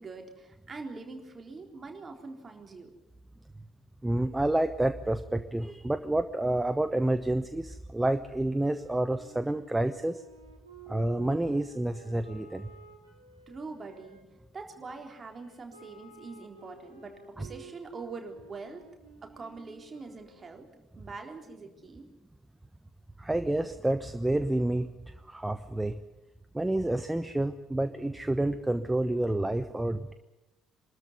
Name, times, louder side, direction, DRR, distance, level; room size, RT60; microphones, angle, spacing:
voice 1, 0.0-2.9 13.5-14.2 14.5-18.8 19.2-20.7 21.0-22.0, right 4 dB, 30° right, 3 dB, 3.9 m, -43 dB
voice 2, 4.0-10.2 10.9-12.7 17.4-17.5 23.2-26.0 26.5-30.1, right 1 dB, 10° right, 10 dB, 1.0 m, -29 dB
Wind instrument woodwind instrument, 8.3-14.2 14.9-20.7, right 5 dB, 85° right, 3.4 m, -53 dB
24.5 x 13.5 x 9.6 m, 1.0 s
figure-of-eight pair, 50°, 0 cm